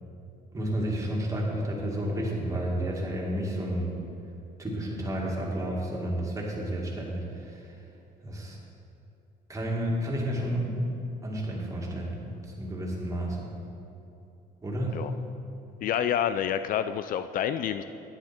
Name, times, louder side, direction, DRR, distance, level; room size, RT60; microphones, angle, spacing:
voice 1, 0.5-3.9 4.6-7.7 8.2-8.6 9.5-10.8 11.2-13.5 14.6-15.0, right 1 dB, 20° right, -3 dB, 2.2 m, -31 dB
voice 2, 15.8-17.8, left 9 dB, 55° left, 11 dB, 0.4 m, -28 dB
10.0 x 9.7 x 4.3 m, 2.8 s
cardioid pair, 110°, 17 cm